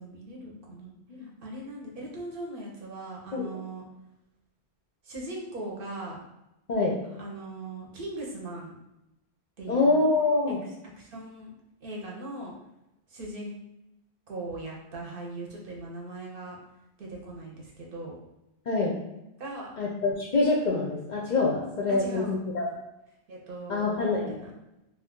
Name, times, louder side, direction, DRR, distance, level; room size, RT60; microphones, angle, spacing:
voice 1, 0.0-0.9 1.2-3.9 5.0-6.2 7.2-8.7 9.6-10.0 10.5-10.6 10.8-11.5 11.8-12.5 13.1-13.5 14.3-16.6 17.0-18.2 19.4-19.8 21.9-22.3 23.3-24.5, right 2 dB, 60° right, -2 dB, 0.8 m, -39 dB
voice 2, 9.7-10.6 18.7-19.0 19.8-22.7 23.7-24.4, left 3 dB, 55° left, -3 dB, 0.5 m, -25 dB
2.5 x 2.3 x 3.6 m, 0.89 s
omnidirectional pair, 1.1 m